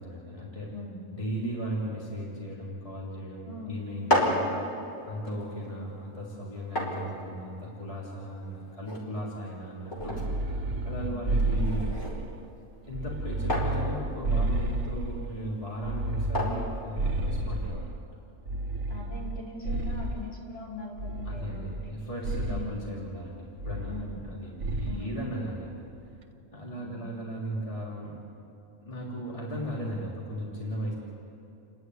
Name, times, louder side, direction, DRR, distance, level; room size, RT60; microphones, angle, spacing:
voice 1, 0.0-0.7 1.1-4.4 5.0-11.9 12.9-18.0 21.2-25.8 26.5-28.2 28.8-30.9, equal, 25° left, -5 dB, 3.4 m, -36 dB
voice 2, 0.7-1.1 3.5-3.8 5.7-6.0 11.1-11.4 18.9-21.9 22.5-22.8 23.9-24.2 24.8-25.2 26.8-27.1, left 2 dB, 55° left, -6 dB, 5.3 m, -41 dB
sound 1, 3.8-17.7, equal, 90° left, 4.3 m, -35 dB
sound 2, 10.0-12.4 12.9-15.3 15.8-18.0 18.5-20.3 21.0-21.9 22.2-22.7 23.6-24.3 24.6-25.1, right 2 dB, 75° right, 1.4 m, -31 dB
29.5 x 11.0 x 9.6 m, 2.8 s
omnidirectional pair, 1.4 m